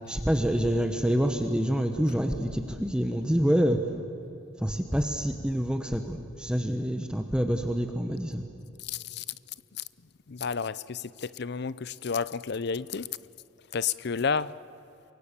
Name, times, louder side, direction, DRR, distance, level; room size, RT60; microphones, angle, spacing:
voice 1, 0.1-3.8 4.6-8.4, equal, 5° right, 1.1 m, -27 dB
voice 2, 8.8-9.2 9.7-9.8 10.3-13.1 13.7-14.5, left 5 dB, 55° left, 0.6 m, -31 dB
28.0 x 23.5 x 6.8 m
head